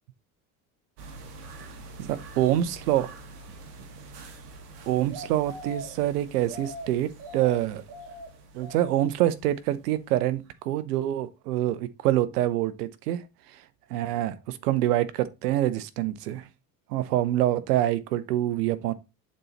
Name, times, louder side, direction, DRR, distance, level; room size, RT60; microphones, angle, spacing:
sound 1, 1.0-10.2 10.5-10.6, right 1 dB, 65° right, 1.8 m, -44 dB
voice 1, 2.0-3.1 4.9-7.8 8.5-13.2 13.9-16.5 16.9-18.9, right 13 dB, 80° right, 0.8 m, -26 dB
7.7 x 4.2 x 4.0 m
hypercardioid pair, 75°, 46 cm